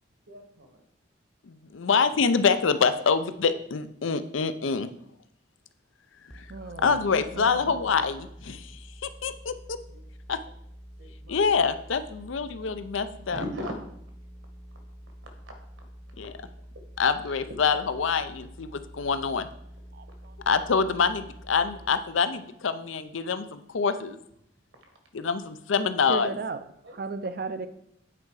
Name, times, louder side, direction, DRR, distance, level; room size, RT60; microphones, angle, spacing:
voice 1, 0.3-0.8 9.9-10.0 11.0-11.4 13.3-13.8 15.5-15.6 16.0-16.5 20.0-20.1 26.8-27.0, equal, 75° right, 4 dB, 1.7 m, -39 dB
voice 2, 1.5-4.9 6.3-6.4 6.8-9.8 10.3-10.4 11.3-13.4 16.2-16.3 17.0-19.5 20.5-24.2 25.1-26.4, left 5 dB, 85° left, 12 dB, 0.6 m, -26 dB
sound 1, 6.3-21.9, equal, ahead, 0.6 m, -47 dB
voice 3, 6.5-7.8 19.9-20.0 26.1-26.6 27.0-27.7, right 3 dB, 50° right, 11 dB, 0.4 m, -34 dB
8.8 x 4.7 x 4.8 m, 0.72 s
head